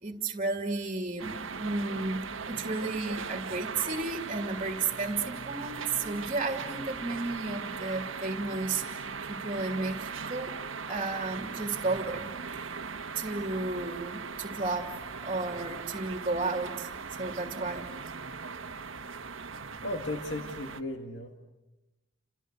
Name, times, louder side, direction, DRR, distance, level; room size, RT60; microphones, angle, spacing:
voice 1, 0.0-9.0 9.3-10.5 10.9-12.3 13.2-14.9 15.2-16.9 17.2-17.9, right 3 dB, 30° right, 5 dB, 2.3 m, -33 dB
sound 1, 1.2-20.8, right 5 dB, 80° right, 1.3 m, -39 dB
voice 2, 19.8-21.5, left 2 dB, 60° left, 4 dB, 2.0 m, -36 dB
29.5 x 27.5 x 6.7 m, 1.1 s
head